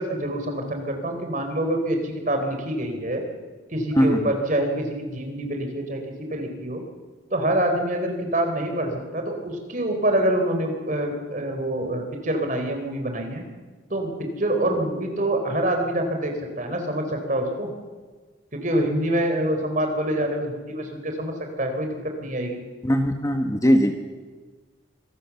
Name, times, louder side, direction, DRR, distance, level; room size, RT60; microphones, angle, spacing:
voice 1, 0.0-3.2 3.7-6.0 6.3-6.8 7.3-13.4 13.9-17.7 18.5-21.9 22.2-22.6, right 1 dB, 40° right, 4 dB, 3.7 m, -26 dB
voice 2, 3.9-4.3 22.8-24.0, equal, 15° left, 5 dB, 1.3 m, -20 dB
25.0 x 18.0 x 7.2 m, 1.4 s
head